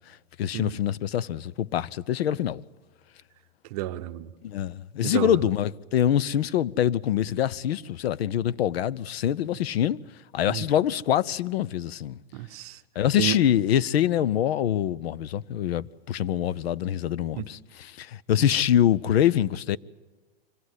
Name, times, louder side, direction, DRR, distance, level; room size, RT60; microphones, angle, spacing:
voice 1, 0.4-2.6 4.4-10.0 10.3-12.2 13.0-19.8, left 10 dB, 85° left, 0.7 m, -25 dB
voice 2, 3.7-4.3 5.0-5.5 9.5-9.6 10.4-10.7 12.3-12.8 13.2-13.4 17.4-17.5, right 15 dB, 40° right, 0.8 m, -31 dB
25.5 x 17.0 x 8.1 m
supercardioid pair, 170°, 30 cm